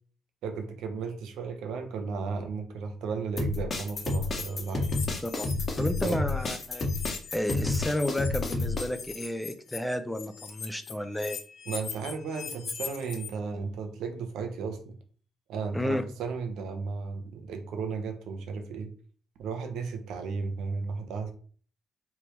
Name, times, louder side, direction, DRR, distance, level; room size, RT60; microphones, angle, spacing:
voice 1, 0.4-4.9 6.0-6.2 11.7-15.0 15.5-18.9 19.4-21.3, right 5 dB, 85° right, 6 dB, 0.9 m, -34 dB
sound 1, 3.4-8.9, left 2 dB, 40° left, 1.2 m, -30 dB
sound 2, 4.0-6.1 6.4-13.3, left 6 dB, 65° left, 1.0 m, -40 dB
voice 2, 5.8-6.9 7.3-11.4 15.7-16.0, left 1 dB, 5° left, 9 dB, 0.6 m, -32 dB
4.8 x 3.5 x 3.2 m, 0.43 s
cardioid pair, 90°, 0 cm